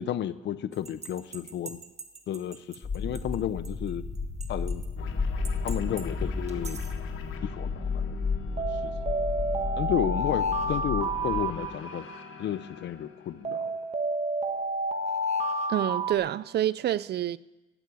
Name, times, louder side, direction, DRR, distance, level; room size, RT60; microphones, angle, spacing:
voice 1, 0.0-1.8 2.3-4.0 4.5-4.8 5.6-6.8 7.4-8.2 8.7-8.9 9.8-12.1 12.4-13.8, left 10 dB, 65° left, 0.7 m, -32 dB
sound 1, 0.8-2.8 3.1-3.2 3.6-3.7 4.4-4.8 5.4-6.0 6.5-6.9 8.6-12.3 13.4-16.1, right 1 dB, 35° right, 1.4 m, -30 dB
sound 2, 2.8-11.5, left 4 dB, 35° left, 4.4 m, -32 dB
sound 3, 4.9-13.9, left 8 dB, 85° left, 1.4 m, -45 dB
voice 2, 15.7-17.4, right 12 dB, 55° right, 0.5 m, -27 dB
15.0 x 8.4 x 8.1 m
cardioid pair, 90°, 20 cm